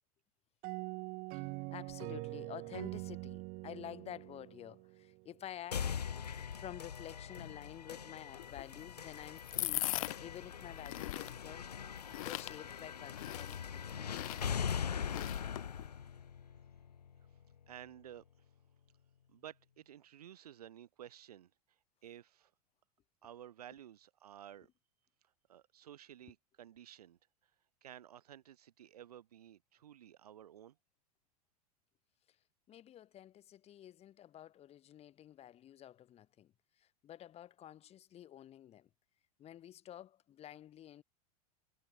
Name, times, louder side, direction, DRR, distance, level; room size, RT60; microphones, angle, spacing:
sound 1, 0.6-5.3, right 28 dB, 50° right, 1.4 m, -44 dB
voice 1, 1.3-6.0 6.3-11.8 12.1-14.6 32.7-38.9 39.4-41.0, left 11 dB, 30° left, 1.4 m, -51 dB
sound 2, 5.7-17.7, left 7 dB, 85° left, 1.2 m, -42 dB
sound 3, 8.4-15.9, left 18 dB, 60° left, 0.8 m, -42 dB
voice 2, 15.8-16.1 17.7-18.2 19.3-21.5 22.0-22.5 23.2-24.7 25.5-27.2 27.8-30.8, right 10 dB, 75° right, 4.6 m, -53 dB
hypercardioid pair, 90°, 20 cm